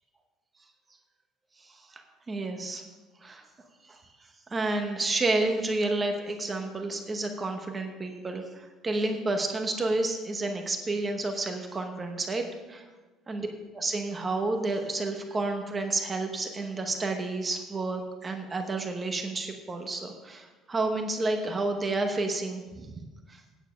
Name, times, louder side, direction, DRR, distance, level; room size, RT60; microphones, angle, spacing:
voice 1, 1.6-2.8 3.2-3.4 3.9-4.0 4.5-12.4 12.7-12.9 13.3-13.5 13.8-23.0 23.3-23.4, right 2 dB, 15° right, 4 dB, 0.9 m, -30 dB
9.1 x 7.3 x 6.2 m, 1.2 s
cardioid pair, 180°, 0 cm